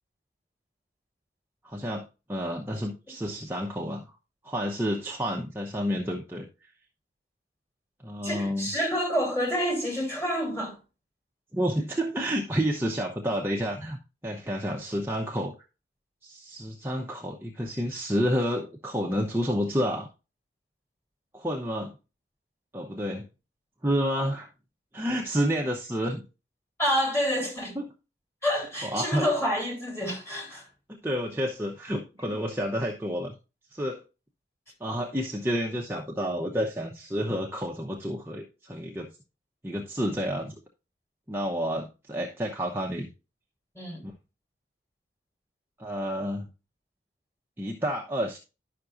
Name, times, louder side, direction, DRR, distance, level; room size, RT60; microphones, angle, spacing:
voice 1, 1.6-2.0 2.3-4.1 4.4-6.7 8.0-8.7 11.5-15.5 16.2-20.1 21.3-21.9 22.7-23.3 23.8-24.5 24.9-26.2 27.8-27.9 28.8-29.3 30.9-33.3 33.7-34.0 34.8-39.1 39.6-40.5 41.3-43.1 44.0-44.1 45.8-46.5 47.6-48.4, equal, 10° right, 0.8 m, -30 dB
voice 2, 8.2-10.8 26.8-27.8 28.4-30.7 43.7-44.0, equal, 15° left, 3.7 m, -28 dB
11.0 x 5.9 x 2.6 m
head